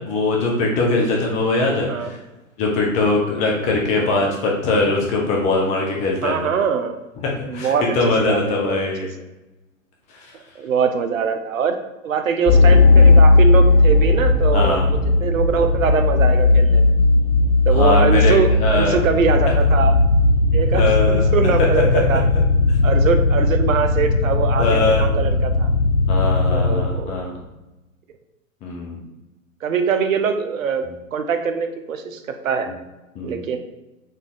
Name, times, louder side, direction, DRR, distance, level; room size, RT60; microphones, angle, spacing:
voice 1, 0.1-2.2 2.6-6.5 7.2-9.1 10.2-10.3 14.5-14.9 17.7-18.9 20.7-21.5 21.9-22.0 24.6-25.1 26.1-27.4 28.6-29.0 33.1-33.4, left 3 dB, 15° left, -1 dB, 0.6 m, -21 dB
voice 2, 4.0-4.4 6.2-7.0 7.5-8.8 10.6-11.8 12.0-16.9 17.7-20.0 20.5-22.2 22.8-25.7 26.5-27.1 29.6-32.7 33.2-33.6, right 6 dB, 75° right, 7 dB, 0.7 m, -23 dB
sound 1, 12.5-26.9, left 3 dB, 80° left, 0.7 m, -16 dB
4.1 x 3.5 x 3.6 m, 1.0 s
hypercardioid pair, 125°, 41 cm